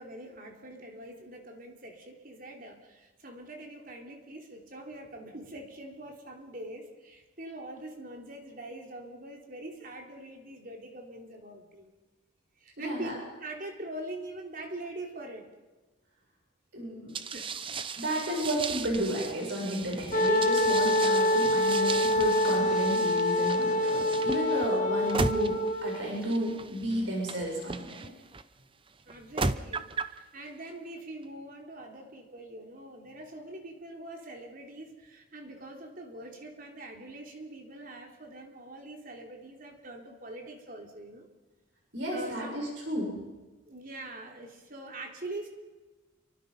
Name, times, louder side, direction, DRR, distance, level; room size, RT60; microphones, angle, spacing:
voice 1, 0.0-11.9 12.6-13.1 13.4-15.5 17.3-17.5 29.1-41.3 42.1-42.7 43.7-45.5, right 1 dB, 45° right, 2 dB, 3.6 m, -43 dB
voice 2, 12.8-13.1 16.7-17.2 18.0-28.1 41.9-43.1, equal, 60° right, -2 dB, 7.5 m, -32 dB
sound 1, 17.1-28.4 29.1-30.2, right 4 dB, 25° right, 0.8 m, -37 dB
Wind instrument woodwind instrument, 20.1-26.1, left 1 dB, 35° left, 1.8 m, -26 dB
28.5 x 24.5 x 5.6 m, 1.2 s
head